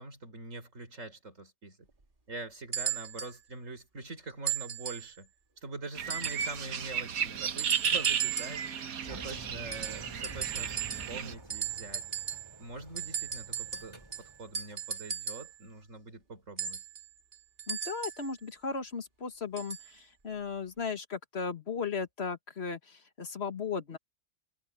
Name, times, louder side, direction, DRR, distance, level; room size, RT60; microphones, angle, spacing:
voice 1, 0.0-1.9 2.3-5.3 5.6-8.6 9.0-12.1 12.6-16.8, right 2 dB, 60° right, 4.5 m, -44 dB
sound 1, 2.7-3.4 4.5-5.1 6.1-6.6 7.6-8.7 9.7-11.2 11.5-12.6 13.0-15.5 16.6-18.3 19.6-19.9 20.8-20.9, right 7 dB, 35° right, 2.8 m, -36 dB
sound 2, 6.0-11.3, right 7 dB, 75° right, 1.6 m, -34 dB
Engine, 9.0-14.9, right 1 dB, 20° right, 3.2 m, -49 dB
voice 2, 17.7-24.0, left 5 dB, 45° left, 1.9 m, -36 dB
omnidirectional pair, 1.5 m